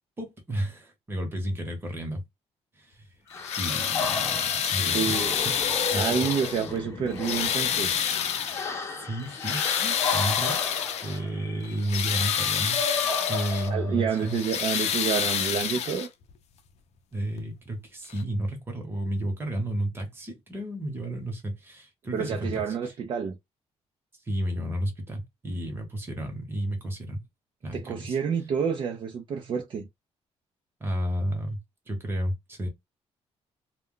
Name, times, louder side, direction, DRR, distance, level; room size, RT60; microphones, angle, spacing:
voice 1, 0.2-2.2 2.8-3.0 3.6-5.6 5.9-6.1 9.0-10.6 11.0-12.8 13.3-14.4 17.1-22.9 24.3-27.2 27.6-28.2 30.8-31.6 31.9-32.7, right 1 dB, 20° right, 1.0 m, -32 dB
sound 1, 3.3-6.8 7.2-8.8 9.2-11.2 11.6-13.7 14.2-16.3 17.4-17.5 18.1-18.2, left 8 dB, 70° left, 0.5 m, -28 dB
sound 2, 3.3-14.4, left 4 dB, 25° left, 0.6 m, -34 dB
voice 2, 4.8-5.3 5.9-8.0 13.7-16.1 22.1-23.4 27.7-29.9, right 7 dB, 45° right, 0.5 m, -29 dB
2.2 x 2.2 x 3.7 m
cardioid pair, 155°, 12 cm